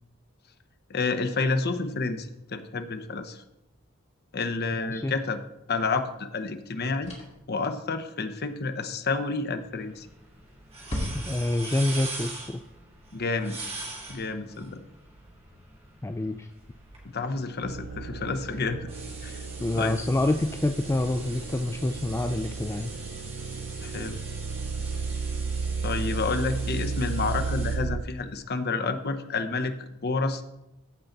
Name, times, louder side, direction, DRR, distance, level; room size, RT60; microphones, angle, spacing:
voice 1, 0.9-3.4 4.3-5.4 5.7-7.1 7.5-10.1 13.1-13.6 14.1-14.8 17.1-18.9 19.2-19.4 19.7-20.0 23.8-24.2 25.8-30.4, left 3 dB, 50° left, 8 dB, 0.9 m, -29 dB
voice 2, 4.8-5.1 11.1-12.6 16.0-16.5 19.6-22.9, left 1 dB, 15° left, 7 dB, 0.3 m, -27 dB
sound 1, 5.7-5.9 7.0-7.5 9.6-10.1 10.3-10.4 10.8-11.6, left 1 dB, 30° left, 2.2 m, -35 dB
sound 2, 9.7-27.8, right 2 dB, 30° right, 2.7 m, -43 dB
sound 3, 17.6-28.0, right 4 dB, 65° right, 0.5 m, -33 dB
15.0 x 5.7 x 3.9 m, 0.91 s
head